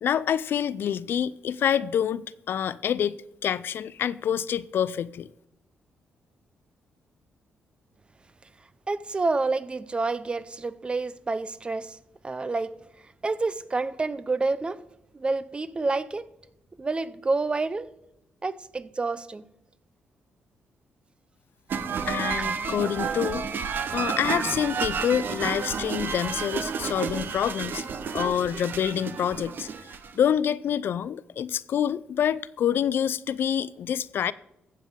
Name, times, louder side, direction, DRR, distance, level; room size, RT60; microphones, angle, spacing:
voice 1, 0.0-5.3 22.1-23.5 23.9-27.8 28.1-29.7 30.2-34.3, left 9 dB, 65° left, 0.3 m, -27 dB
voice 2, 8.9-12.0 12.2-12.7 13.2-14.8 15.1-16.2 16.8-17.9 18.4-19.4 24.3-24.4, right 3 dB, 25° right, 0.5 m, -28 dB
sound 1, 21.7-30.3, right 6 dB, 60° right, 0.7 m, -31 dB
15.0 x 7.3 x 3.6 m
cardioid pair, 90°, 4 cm